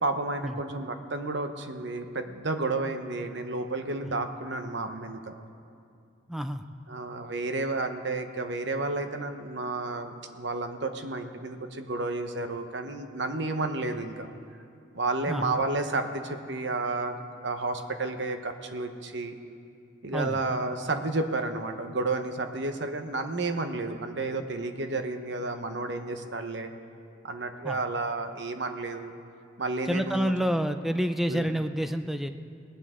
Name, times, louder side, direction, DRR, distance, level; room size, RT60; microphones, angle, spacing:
voice 1, 0.0-5.4 6.9-14.3 14.9-17.2 17.4-19.3 20.0-26.7 27.2-29.1 29.6-30.3 31.3-31.5, right 3 dB, 60° right, 7 dB, 1.0 m, -31 dB
voice 2, 6.3-6.6 15.3-15.5 20.1-20.4 27.6-27.8 29.9-32.3, equal, ahead, 8 dB, 0.5 m, -28 dB
20.0 x 18.5 x 3.8 m, 2.5 s
head